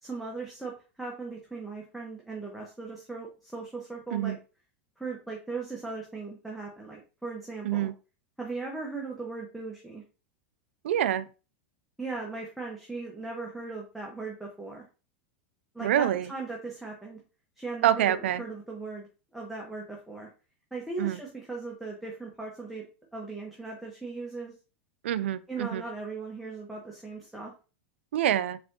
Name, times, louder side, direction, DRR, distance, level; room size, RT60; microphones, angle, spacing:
voice 1, 0.0-4.4 5.0-7.9 8.4-10.0 12.0-14.8 15.7-17.2 17.6-20.3 20.7-22.8 23.1-24.5 25.5-27.5, right 3 dB, ahead, 1.1 m, -38 dB
voice 2, 10.8-11.2 15.8-16.3 17.8-18.4 21.0-21.2 25.0-25.8 28.1-28.6, right 11 dB, 80° right, 0.4 m, -26 dB
4.2 x 4.2 x 2.8 m
hypercardioid pair, 115°, 6 cm